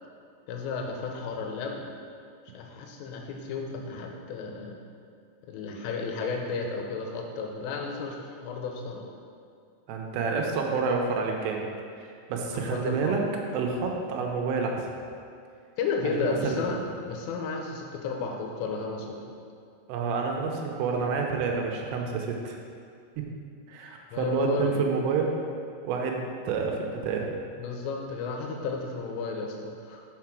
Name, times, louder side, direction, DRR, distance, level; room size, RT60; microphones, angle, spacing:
voice 1, 0.5-1.9 2.5-4.8 5.5-9.1 12.5-13.2 15.8-16.8 17.0-19.2 24.1-24.8 27.6-30.0, left 4 dB, 90° left, 1 dB, 3.3 m, -33 dB
voice 2, 9.9-11.6 12.0-13.2 13.5-14.9 16.2-16.9 19.9-22.6 23.2-23.3 23.7-25.4 25.8-27.4, right 4 dB, 90° right, 1 dB, 3.3 m, -29 dB
6.7 x 5.9 x 6.1 m, 2.3 s
omnidirectional pair, 5.8 m